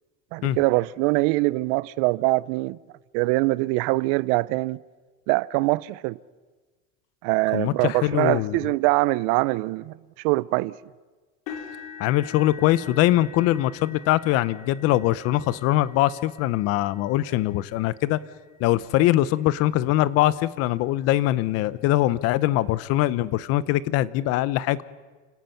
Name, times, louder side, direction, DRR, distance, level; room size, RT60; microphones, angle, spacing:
voice 1, 0.3-2.8 3.1-4.8 5.3-6.2 7.2-10.8, right 22 dB, 65° right, 0.6 m, -23 dB
voice 2, 7.5-8.7 12.0-18.2 18.6-24.8, left 15 dB, 50° left, 0.8 m, -22 dB
sound 1, 11.5-19.5 20.1-20.4 20.8-20.9 22.3-22.4, left 6 dB, 65° left, 3.7 m, -45 dB
29.5 x 17.0 x 5.8 m
cardioid pair, 160°, 31 cm